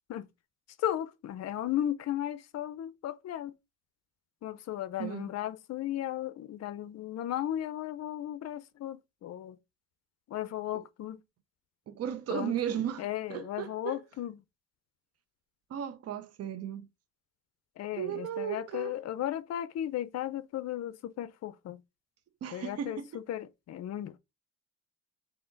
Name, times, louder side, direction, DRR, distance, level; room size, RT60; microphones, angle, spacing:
voice 1, 0.8-3.5 4.4-9.6 10.3-11.2 12.3-14.4 17.8-21.8 22.5-24.2, left 12 dB, 60° left, 0.5 m, -35 dB
voice 2, 11.9-14.0 15.7-16.9 18.0-19.0 22.4-23.1, right 10 dB, 55° right, 0.7 m, -35 dB
3.6 x 2.8 x 3.8 m
cardioid pair, 90°, 30 cm